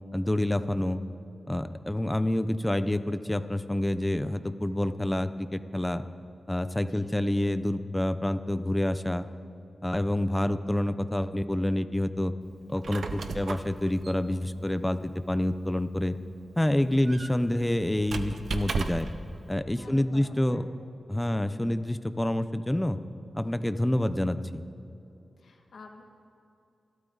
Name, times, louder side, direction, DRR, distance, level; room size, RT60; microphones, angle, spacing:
voice 1, 0.1-1.0 1.5-6.0 6.5-9.3 9.8-12.3 12.7-16.2 16.6-19.1 19.5-20.6 21.1-23.0 23.3-24.6, left 1 dB, 10° left, 11 dB, 0.8 m, -27 dB
Squeak, 12.6-19.2, right 4 dB, 75° right, 0.9 m, -37 dB
voice 2, 16.9-17.3 19.8-20.7 25.4-26.0, left 3 dB, 80° left, 1 dB, 2.0 m, -49 dB
28.0 x 12.5 x 4.1 m, 2.7 s
cardioid pair, 75°, 0 cm